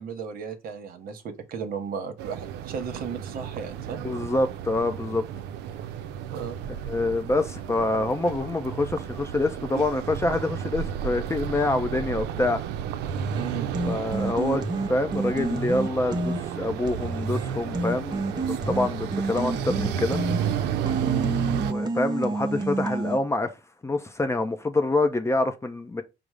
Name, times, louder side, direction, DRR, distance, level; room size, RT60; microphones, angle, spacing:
voice 1, 0.0-4.0 6.3-6.6 13.4-13.7 21.0-21.3, right 6 dB, 60° right, 0.9 m, -35 dB
sound 1, 2.2-21.7, right 9 dB, 85° right, 0.4 m, -33 dB
voice 2, 4.0-5.2 6.9-12.6 13.9-20.2 21.7-23.5 23.8-26.0, left 2 dB, 15° left, 0.5 m, -26 dB
sound 2, 13.1-23.2, right 2 dB, 25° right, 0.7 m, -30 dB
5.2 x 2.0 x 4.8 m
cardioid pair, 110°, 17 cm